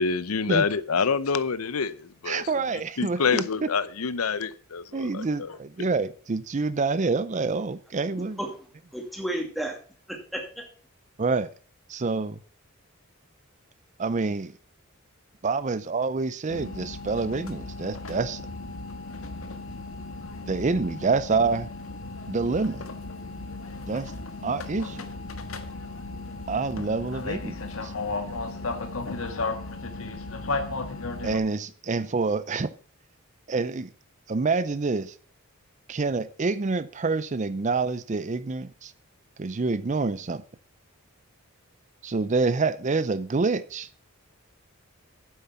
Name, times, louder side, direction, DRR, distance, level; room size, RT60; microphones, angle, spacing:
voice 1, 0.0-5.6, left 5 dB, 85° left, 0.7 m, -27 dB
voice 2, 2.3-3.5 4.9-8.4 11.2-11.5 11.9-12.4 14.0-14.5 15.4-18.4 20.5-21.7 22.3-22.9 23.9-24.1 24.4-25.1 26.5-27.9 31.2-32.7 33.5-33.9 34.3-35.1 35.9-38.9 39.4-40.4 42.0-43.9, right 4 dB, 35° right, 0.5 m, -27 dB
voice 3, 8.1-8.7 8.9-9.8 10.1-10.7, right 1 dB, ahead, 2.4 m, -33 dB
sound 1, 16.5-31.4, left 3 dB, 70° left, 1.5 m, -35 dB
9.1 x 7.9 x 5.8 m
head